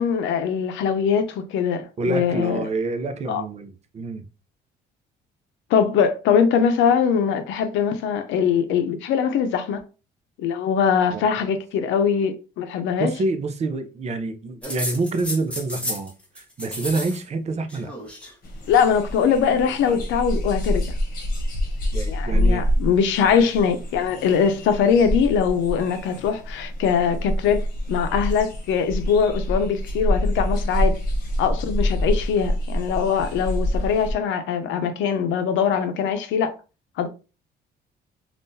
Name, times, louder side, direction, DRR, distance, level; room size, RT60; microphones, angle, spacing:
voice 1, 0.0-2.6 3.3-3.4 5.7-9.8 10.4-13.1 18.7-20.8 22.1-31.0 31.4-36.5 37.0-37.1, left 7 dB, 85° left, 0.6 m, -22 dB
voice 2, 2.0-4.2 11.1-11.3 13.0-17.9 21.9-22.7, right 3 dB, 35° right, 0.6 m, -27 dB
sound 1, 14.6-16.1 16.4-17.2 17.5-18.3 19.4-20.1, equal, 5° left, 1.3 m, -33 dB
sound 2, 18.4-34.1, equal, 45° left, 1.2 m, -26 dB
3.6 x 2.5 x 2.7 m
cardioid pair, 125°, 19 cm